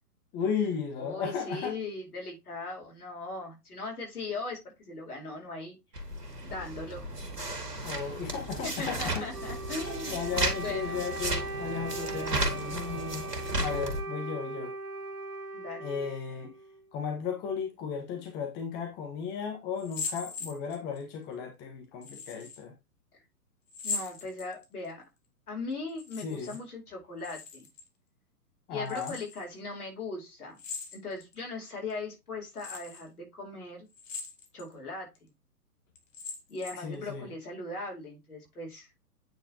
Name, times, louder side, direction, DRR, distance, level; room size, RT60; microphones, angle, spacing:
voice 1, 0.3-1.7 7.8-9.3 9.9-13.3 13.6-14.7 15.8-16.5 16.9-22.7 26.2-26.6 28.7-29.2 36.8-37.3, left 6 dB, 20° left, 1.4 m, -35 dB
voice 2, 1.0-5.8 6.4-7.0 8.6-10.2 10.6-11.0 15.5-15.9 23.8-25.0 25.5-27.7 28.7-30.6 30.9-33.9 34.5-35.3 36.5-38.9, left 3 dB, 70° left, 4.4 m, -39 dB
sound 1, 5.9-14.0, right 2 dB, 85° right, 2.2 m, -34 dB
Wind instrument woodwind instrument, 9.3-16.9, right 2 dB, 70° right, 1.9 m, -39 dB
sound 2, 19.8-21.0 22.0-22.6 23.7-24.9 25.9-26.6 26.9-27.9 28.9-29.4 30.6-31.3 31.9-32.0 32.6-33.0 33.9-34.7 35.2-35.3 36.0-36.9, left 4 dB, 55° left, 2.2 m, -40 dB
9.1 x 4.8 x 2.9 m
figure-of-eight pair, 120°, 46 cm